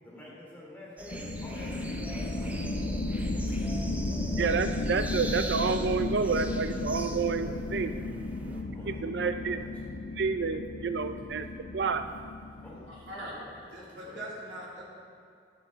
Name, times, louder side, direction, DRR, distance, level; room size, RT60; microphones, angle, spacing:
voice 1, 0.0-2.7 3.0-3.1 3.4-3.5 8.7-9.7 12.6-12.9 13.1-13.4 13.7-14.2, left 1 dB, 10° left, -6 dB, 3.0 m, -48 dB
sound 1, 1.0-8.6, right 1 dB, 10° right, 0.6 m, -42 dB
sound 2, 1.1-13.4, left 2 dB, 90° left, 0.8 m, -34 dB
voice 2, 4.4-8.1 8.8-9.6 10.2-11.5 11.7-12.0, right 5 dB, 70° right, 9 dB, 0.5 m, -29 dB
voice 3, 12.9-14.8, right 1 dB, 85° right, -5 dB, 2.4 m, -42 dB
11.5 x 8.7 x 4.6 m, 2.5 s
head